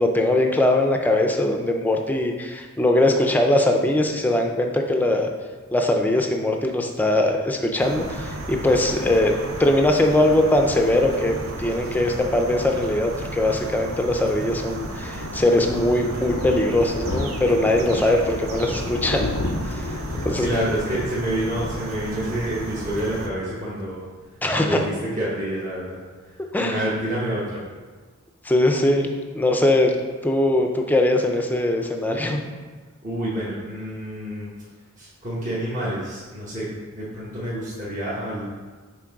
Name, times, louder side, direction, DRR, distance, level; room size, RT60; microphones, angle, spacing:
voice 1, 0.0-5.3 5.7-9.3 9.6-19.2 19.6-19.9 20.2-20.5 24.4-24.8 26.5-26.8 28.4-29.1 29.3-29.9 30.2-32.4, left 1 dB, 10° left, 3 dB, 0.5 m, -21 dB
sound 1, 7.8-23.3, right 2 dB, 80° right, 0.8 m, -34 dB
Thunder, 14.0-23.1 23.4-23.7 24.0-24.1 24.2-24.3, left 2 dB, 85° left, 0.6 m, -33 dB
voice 2, 19.8-24.0 24.6-26.0 26.6-27.6 33.0-34.5 35.0-36.7 36.9-38.4, right 1 dB, 40° right, -8 dB, 1.2 m, -28 dB
6.2 x 3.8 x 4.7 m, 1.4 s
head